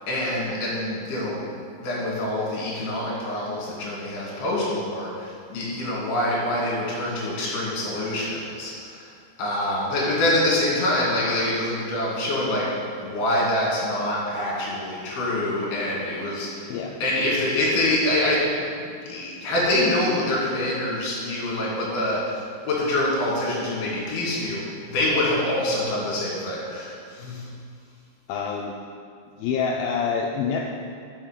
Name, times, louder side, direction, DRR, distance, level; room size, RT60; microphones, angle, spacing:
voice 1, 0.1-1.4 1.8-9.1 9.4-12.7 13.0-16.7 17.0-18.8 19.1-27.5, left 1 dB, 65° left, -5 dB, 4.4 m, -25 dB
voice 2, 16.7-17.0 28.3-28.8 29.4-30.7, left 6 dB, 85° left, 0 dB, 2.1 m, -26 dB
8.7 x 5.9 x 6.6 m, 2.2 s
omnidirectional pair, 4.9 m